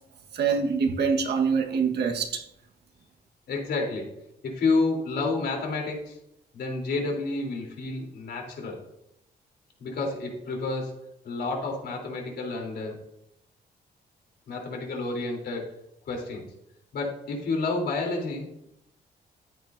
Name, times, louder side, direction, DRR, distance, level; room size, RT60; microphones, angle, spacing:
voice 1, 0.3-2.4, right 5 dB, 75° right, 1.6 m, -25 dB
voice 2, 3.5-4.1 4.4-6.2 6.5-8.8 9.8-13.0 14.5-15.7 16.1-16.5 16.9-18.7, left 3 dB, 75° left, 3.6 m, -30 dB
13.5 x 9.3 x 2.7 m
cardioid pair, 125°, 17 cm